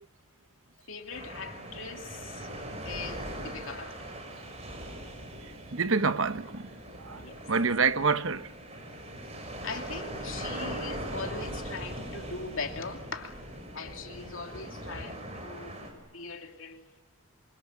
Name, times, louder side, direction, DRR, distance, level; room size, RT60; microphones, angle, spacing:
voice 1, 0.9-2.5 2.8-4.1 7.1-7.4 9.6-13.4 13.7-15.8 16.1-17.0, left 4 dB, 70° left, 2.7 m, -40 dB
sound 1, 1.1-15.9, right 1 dB, 30° right, 6.2 m, -40 dB
voice 2, 5.7-6.7 7.0-7.2 7.5-8.4, right 4 dB, 70° right, 1.0 m, -26 dB
26.0 x 25.5 x 9.1 m
head